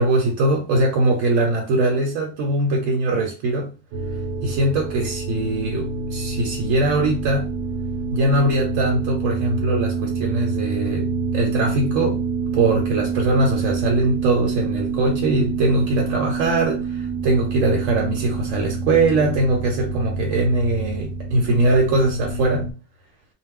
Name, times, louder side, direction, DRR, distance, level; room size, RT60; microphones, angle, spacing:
voice 1, 0.0-3.7 4.4-7.5 8.1-11.1 11.3-12.2 12.5-22.7, right 2 dB, 80° right, 1.0 m, -21 dB
sound 1, 3.9-22.7, right 4 dB, 60° right, 0.6 m, -27 dB
2.4 x 2.1 x 3.5 m
omnidirectional pair, 1.3 m